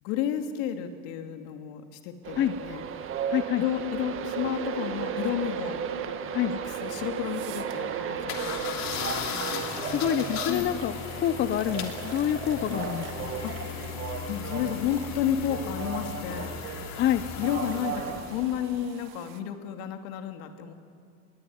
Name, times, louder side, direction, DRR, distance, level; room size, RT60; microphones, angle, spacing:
voice 1, 0.0-2.8 3.6-5.8 6.5-8.8 10.5-10.7 12.7-12.8 13.4-13.7 14.3-16.6 17.4-20.7, left 10 dB, 65° left, 6 dB, 2.8 m, -32 dB
Train, 2.2-18.9, right 8 dB, 35° right, 1.7 m, -36 dB
voice 2, 3.3-3.6 6.3-6.5 8.4-8.5 9.8-13.3 16.9-17.2, left 11 dB, 30° left, 12 dB, 0.7 m, -27 dB
sound 1, 6.8-6.9 7.3-7.7 8.4-8.5 8.9-11.0 11.5-15.1 16.0-19.4, right 12 dB, 60° right, 1.9 m, -43 dB
sound 2, 8.3-18.4, left 8 dB, 45° left, 3.1 m, -37 dB
26.0 x 21.0 x 9.6 m, 2.4 s
supercardioid pair, 135°, 38 cm